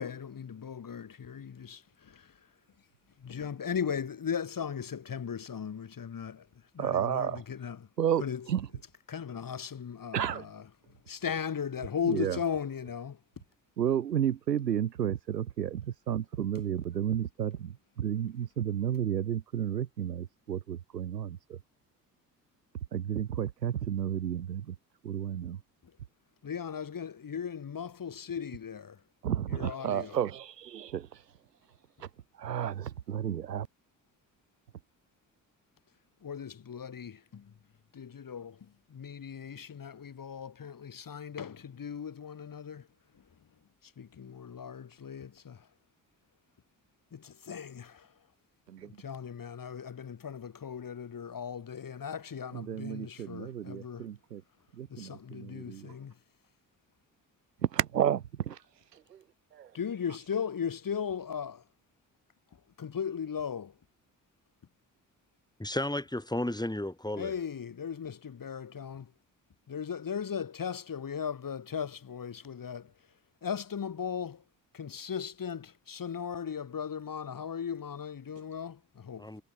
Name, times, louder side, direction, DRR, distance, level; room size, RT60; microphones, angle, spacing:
voice 1, 0.0-2.3 3.2-6.5 6.7-7.9 8.2-8.4 9.1-10.6 11.1-13.2 26.4-29.0 29.5-30.2 36.2-37.5 37.9-42.9 43.8-45.7 47.1-48.1 48.8-54.1 54.9-56.1 59.7-61.6 62.8-63.7 67.2-69.1 69.7-72.9 73.4-74.4 74.7-79.3, left 7 dB, 45° left, 4.9 m, -37 dB
voice 2, 6.8-7.4 8.0-8.7 10.1-10.4 12.0-12.4 13.8-21.6 22.9-24.8 25.0-25.6 29.2-31.2 32.0-32.1 32.4-33.7 48.7-48.9 52.5-54.4 54.7-55.9 57.6-58.6 58.9-59.2 59.5-59.7, right 9 dB, 85° right, 2.2 m, -32 dB
voice 3, 65.6-67.3 79.2-79.4, left 1 dB, 10° left, 7.5 m, -33 dB
figure-of-eight pair, 45°, 48 cm